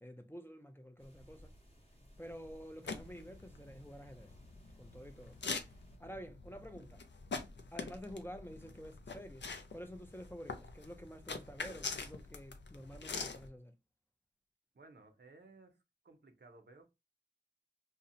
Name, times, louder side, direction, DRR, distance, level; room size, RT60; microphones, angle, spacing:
voice 1, 0.0-1.5 2.2-4.3 4.8-5.4 6.0-7.0 7.7-13.7, equal, 10° left, 0.4 m, -50 dB
sound 1, 1.0-6.0, equal, 35° left, 0.8 m, -62 dB
sound 2, 2.8-13.5, left 4 dB, 85° left, 0.4 m, -45 dB
voice 2, 14.7-16.9, right 3 dB, 70° right, 0.5 m, -59 dB
2.7 x 2.0 x 2.5 m
wide cardioid pair, 45°, 18 cm